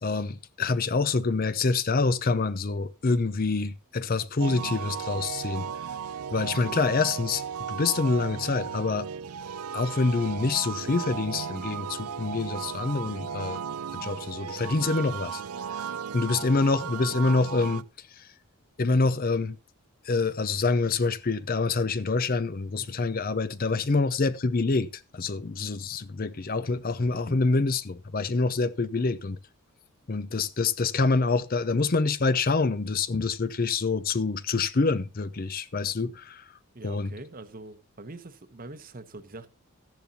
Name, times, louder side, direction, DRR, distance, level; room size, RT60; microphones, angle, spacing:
voice 1, 0.0-5.7 6.3-7.4 7.7-9.1 9.7-13.6 13.9-15.4 16.1-17.8 18.2-18.3 18.8-19.6 20.1-24.9 25.1-29.4 30.1-36.4 36.8-37.1, left 3 dB, 40° left, 0.6 m, -26 dB
sound 1, 4.4-17.8, right 7 dB, 85° right, 0.5 m, -35 dB
voice 2, 36.7-39.5, right 2 dB, 40° right, 1.0 m, -44 dB
14.0 x 10.5 x 2.8 m
head